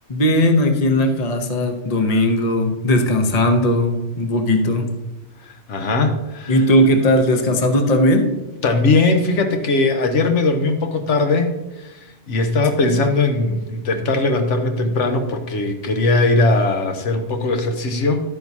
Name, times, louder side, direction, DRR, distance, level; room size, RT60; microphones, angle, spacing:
voice 1, 0.1-4.9 6.5-8.3 12.8-13.0, left 1 dB, 35° left, 6 dB, 0.9 m, -17 dB
voice 2, 5.7-6.6 8.6-11.9 12.3-18.2, left 3 dB, 85° left, 6 dB, 1.3 m, -19 dB
11.5 x 8.9 x 2.8 m, 1.0 s
omnidirectional pair, 1.2 m